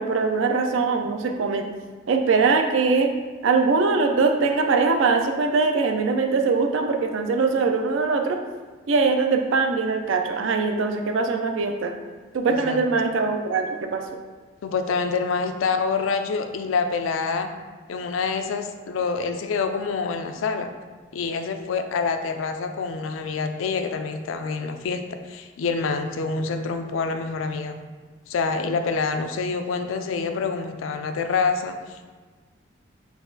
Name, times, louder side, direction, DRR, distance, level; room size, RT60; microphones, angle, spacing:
voice 1, 0.0-1.7 2.1-3.1 3.4-8.4 8.9-11.9 12.3-14.0, right 4 dB, 80° right, 5 dB, 0.4 m, -22 dB
voice 2, 14.6-17.5 17.9-20.7 21.1-27.7 28.3-32.1, left 4 dB, 85° left, 7 dB, 0.4 m, -26 dB
4.0 x 2.4 x 3.8 m, 1.4 s
head